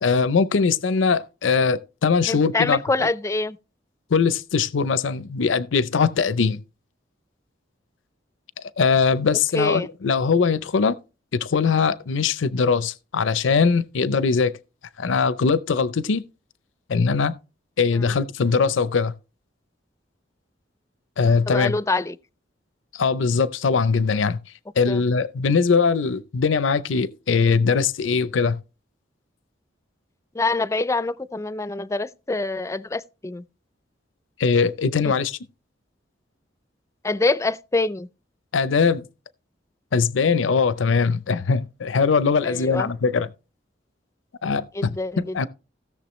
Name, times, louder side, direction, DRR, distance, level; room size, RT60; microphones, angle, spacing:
voice 1, 0.0-3.1 4.1-6.6 8.8-11.0 11.3-14.5 15.0-16.2 16.9-17.3 17.8-19.1 21.2-21.7 22.9-24.4 24.8-28.6 34.4-35.4 38.5-39.0 39.9-43.3 44.4-44.9 45.2-45.5, left 5 dB, 85° left, 0.5 m, -21 dB
voice 2, 2.3-3.6 9.5-9.9 18.0-18.2 21.5-22.2 24.9-25.0 30.3-33.4 35.0-35.1 37.0-38.1 42.4-42.9 44.7-45.5, left 3 dB, 15° left, 0.4 m, -25 dB
16.5 x 6.7 x 3.1 m
head